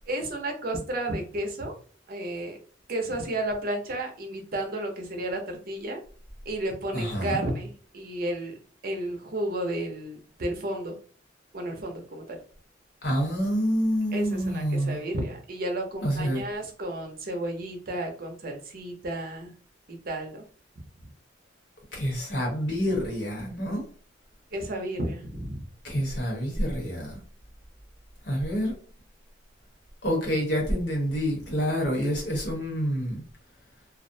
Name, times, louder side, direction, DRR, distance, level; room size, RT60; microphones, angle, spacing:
voice 1, 0.1-1.7 2.1-2.6 2.9-6.0 6.5-8.6 8.8-10.9 11.5-12.4 14.1-19.5 20.0-20.4 24.5-25.6, right 1 dB, 50° right, 3 dB, 0.6 m, -32 dB
voice 2, 6.9-7.4 13.0-15.0 16.0-16.4 21.9-23.8 25.8-27.2 28.2-28.8 30.0-33.2, equal, 70° left, -1 dB, 1.0 m, -27 dB
2.4 x 2.0 x 2.6 m, 0.41 s
head